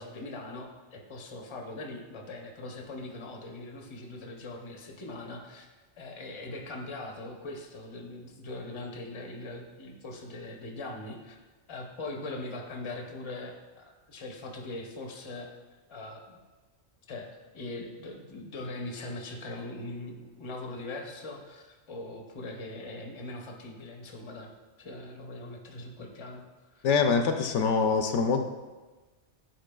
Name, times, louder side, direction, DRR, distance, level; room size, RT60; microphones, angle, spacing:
voice 1, 0.0-5.7 6.0-11.4 11.7-16.4 17.1-24.5 24.8-26.8, left 2 dB, 30° left, 1 dB, 0.7 m, -41 dB
voice 2, 26.8-28.4, left 5 dB, 80° left, 6 dB, 0.9 m, -24 dB
10.0 x 4.4 x 2.3 m, 1.2 s
omnidirectional pair, 1.2 m